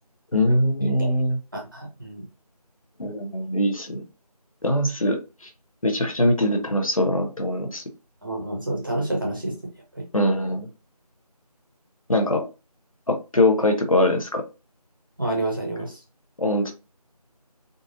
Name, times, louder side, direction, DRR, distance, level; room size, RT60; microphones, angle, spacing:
voice 1, 0.3-1.4 3.0-4.0 4.6-5.2 5.8-7.8 10.1-10.7 12.1-12.5 13.1-14.4 16.4-16.7, left 1 dB, 55° left, 4 dB, 0.8 m, -22 dB
voice 2, 1.5-2.3 8.2-9.6 9.9-10.0 15.2-16.0, right 1 dB, 30° right, -1 dB, 1.1 m, -29 dB
3.9 x 2.5 x 2.6 m, 0.29 s
figure-of-eight pair, 170°, 20 cm